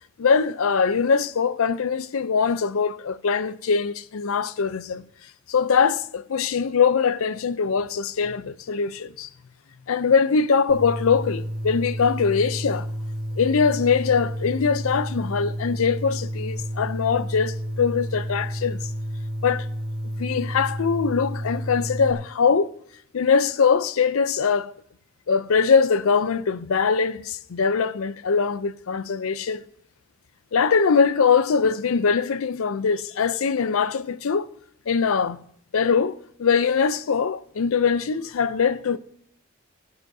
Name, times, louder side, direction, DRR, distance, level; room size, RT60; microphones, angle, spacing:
voice 1, 0.2-5.0 5.5-9.3 9.9-12.9 13.4-18.8 19.4-19.7 20.2-22.7 23.1-24.7 25.3-29.6 30.5-34.5 34.9-35.4 35.7-39.0, left 5 dB, 75° left, 0.5 m, -22 dB
sound 1, 10.7-22.1, equal, 80° right, 1.6 m, -31 dB
17.5 x 9.4 x 2.7 m
head